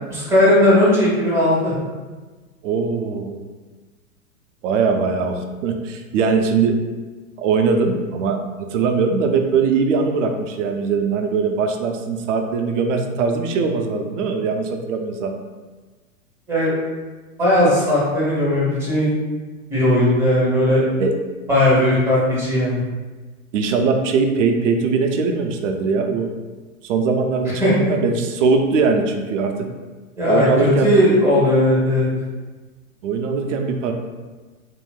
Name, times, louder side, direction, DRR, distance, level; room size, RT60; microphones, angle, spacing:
voice 1, 0.1-1.7 16.5-16.7 17.4-19.2 19.7-20.8 21.5-22.8 27.6-27.9 30.2-32.1, left 1 dB, 5° right, -8 dB, 1.1 m, -17 dB
voice 2, 2.6-3.4 4.6-6.7 7.4-15.4 21.0-21.1 23.5-26.3 26.8-29.5 30.3-30.9 33.0-33.9, right 4 dB, 60° right, 4 dB, 0.5 m, -21 dB
3.0 x 2.6 x 2.2 m, 1.3 s
hypercardioid pair, 115°, 43 cm